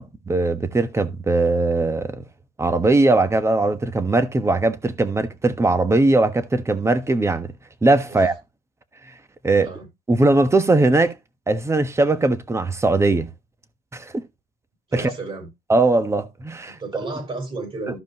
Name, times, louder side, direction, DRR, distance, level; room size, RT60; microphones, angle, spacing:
voice 1, 0.0-2.2 2.6-7.5 7.8-8.3 9.4-9.7 10.1-11.2 11.5-13.3 13.9-14.2 14.9-15.1 15.7-16.8, right 2 dB, 15° right, 1.2 m, -20 dB
voice 2, 9.5-9.9 14.9-15.5 16.7-18.0, right 3 dB, 35° right, 5.3 m, -32 dB
14.0 x 5.1 x 3.0 m
cardioid pair, 110°, 17 cm